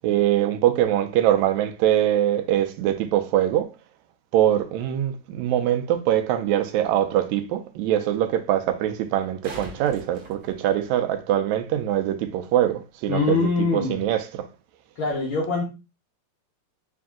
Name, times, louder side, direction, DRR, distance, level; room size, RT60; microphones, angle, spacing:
voice 1, 0.0-3.7 4.3-14.5, right 11 dB, 80° right, 1.8 m, -23 dB
sound 1, 9.1-11.2 14.1-14.2, right 1 dB, 60° right, 1.4 m, -42 dB
voice 2, 13.1-14.0 15.0-15.6, left 4 dB, 80° left, 1.1 m, -23 dB
4.7 x 2.6 x 3.6 m
omnidirectional pair, 3.5 m